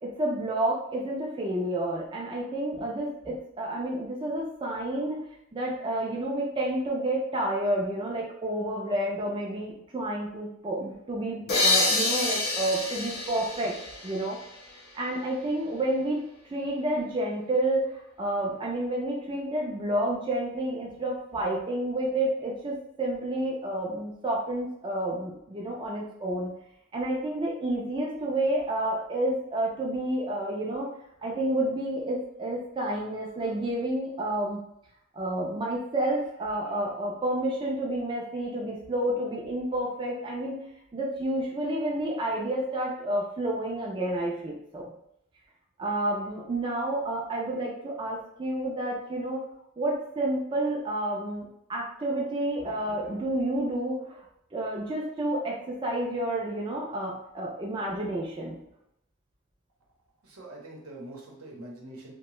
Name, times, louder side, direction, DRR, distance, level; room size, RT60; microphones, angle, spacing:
voice 1, 0.0-5.3 5.5-13.7 14.0-14.4 14.9-16.2 16.5-26.5 26.9-30.9 31.2-34.6 35.1-40.6 40.9-44.9 45.8-49.4 49.8-54.2 54.5-58.6, right 1 dB, 20° right, -2 dB, 0.4 m, -30 dB
sound 1, 11.5-15.0, left 2 dB, 45° left, 0.7 m, -28 dB
voice 2, 60.2-62.1, right 1 dB, 80° right, -2 dB, 0.8 m, -44 dB
2.7 x 2.1 x 3.0 m, 0.75 s
head